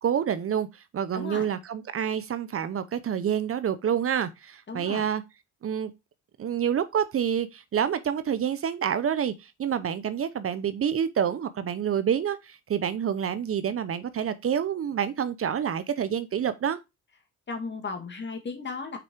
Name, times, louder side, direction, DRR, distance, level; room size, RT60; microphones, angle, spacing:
voice 1, 0.0-0.7 0.9-5.2 5.6-5.9 6.4-16.8, right 8 dB, 45° right, 0.8 m, -28 dB
voice 2, 1.1-1.5 4.7-5.1 17.5-19.0, left 4 dB, 35° left, 2.0 m, -35 dB
6.0 x 4.7 x 4.5 m
cardioid pair, 90°, 30 cm